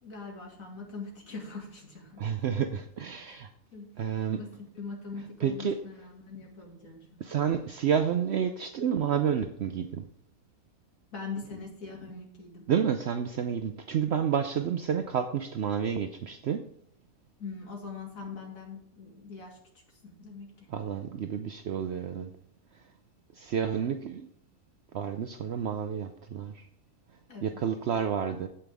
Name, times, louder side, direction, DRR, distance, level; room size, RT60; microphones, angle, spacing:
voice 1, 0.0-2.3 3.3-3.4 3.7-3.9 4.3-7.2 11.1-12.7 17.4-19.6 20.0-20.7 27.3-27.6, left 4 dB, 75° left, 0 dB, 2.4 m, -42 dB
voice 2, 2.2-3.5 4.0-4.4 5.4-5.8 7.2-10.0 12.7-16.7 20.7-22.3 23.4-24.3 24.9-26.7 27.4-28.5, right 8 dB, 65° right, 7 dB, 0.7 m, -30 dB
8.6 x 7.9 x 3.5 m, 0.69 s
omnidirectional pair, 1.4 m